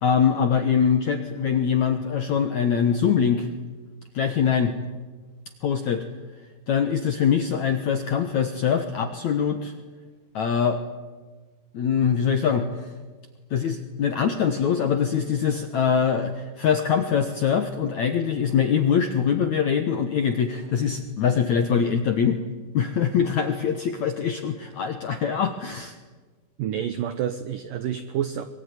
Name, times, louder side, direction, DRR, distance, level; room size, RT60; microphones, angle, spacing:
voice 1, 0.0-3.5 4.1-4.7 5.6-6.0 6.7-9.7 10.3-10.8 11.7-12.9 13.5-22.4 22.7-25.9, left 7 dB, 70° left, 7 dB, 1.8 m, -23 dB
voice 2, 26.6-28.4, right 10 dB, 80° right, 10 dB, 1.9 m, -28 dB
24.5 x 22.5 x 9.8 m, 1.3 s
omnidirectional pair, 5.3 m